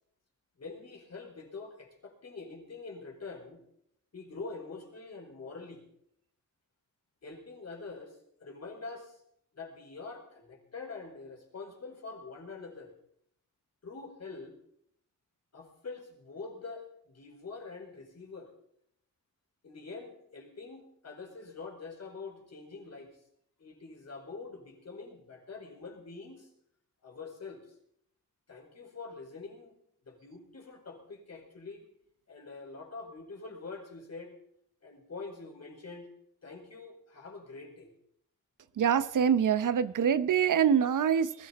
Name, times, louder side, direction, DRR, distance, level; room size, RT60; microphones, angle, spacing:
voice 1, 0.6-3.6 4.1-5.8 7.2-9.2 9.5-12.9 13.8-14.5 15.5-18.5 19.6-23.1 23.6-26.5 27.0-27.7 28.5-29.7 30.0-31.8 32.3-34.3 34.8-36.1 36.4-37.9, left 4 dB, 55° left, 1 dB, 5.1 m, -45 dB
voice 2, 38.8-41.5, right 8 dB, 75° right, 14 dB, 0.8 m, -25 dB
20.5 x 14.5 x 4.2 m, 0.71 s
wide cardioid pair, 95°, 31 cm